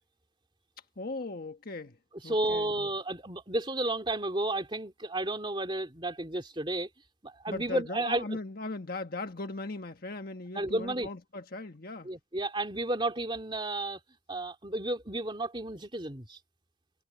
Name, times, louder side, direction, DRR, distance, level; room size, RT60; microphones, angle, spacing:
voice 1, 1.0-2.0 2.2-2.9 7.5-12.1, left 2 dB, 50° left, 1.4 m, -38 dB
voice 2, 2.2-6.9 7.2-8.4 10.5-11.1 12.0-14.0 14.3-16.4, right 2 dB, 25° right, 2.9 m, -32 dB
head